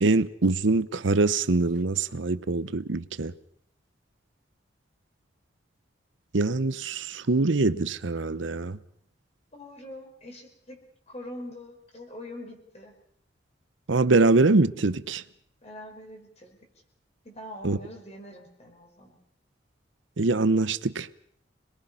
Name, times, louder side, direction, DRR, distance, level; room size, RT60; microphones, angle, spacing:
voice 1, 0.0-3.3 6.3-8.8 13.9-15.2 17.6-17.8 20.2-21.1, right 3 dB, 85° right, 0.8 m, -23 dB
voice 2, 9.5-10.8 11.1-12.9 15.6-16.6 17.2-19.2, left 1 dB, 35° left, 5.4 m, -43 dB
27.0 x 21.0 x 5.6 m
head